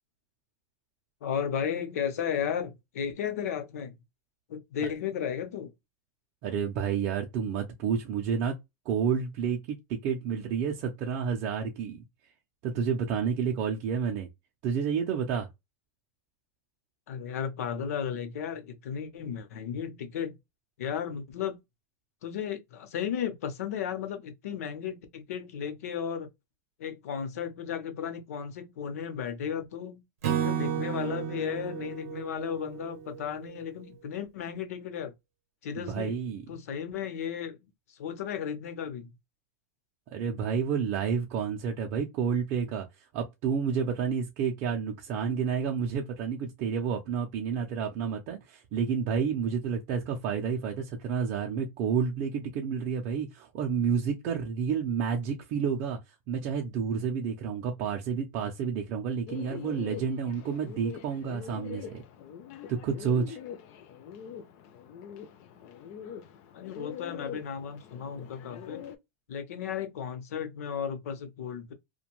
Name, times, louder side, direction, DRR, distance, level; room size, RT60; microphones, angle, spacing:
voice 1, 1.2-4.0 4.5-5.7 17.1-20.4 20.8-21.6 22.2-26.3 26.8-30.0 30.4-35.1 35.6-36.2 36.5-37.6 37.9-39.1 66.5-68.9 69.3-71.7, left 8 dB, 85° left, 0.7 m, -34 dB
voice 2, 6.4-8.6 8.9-12.0 12.6-14.3 14.6-15.5 35.7-36.4 40.1-42.9 43.1-56.0 56.3-62.0 62.7-63.4, right 6 dB, 35° right, 0.4 m, -30 dB
Acoustic guitar / Strum, 30.2-33.5, right 9 dB, 80° right, 0.6 m, -33 dB
Bird, 59.3-69.0, left 8 dB, 35° left, 0.4 m, -43 dB
2.5 x 2.2 x 2.9 m
supercardioid pair, 170°, 8 cm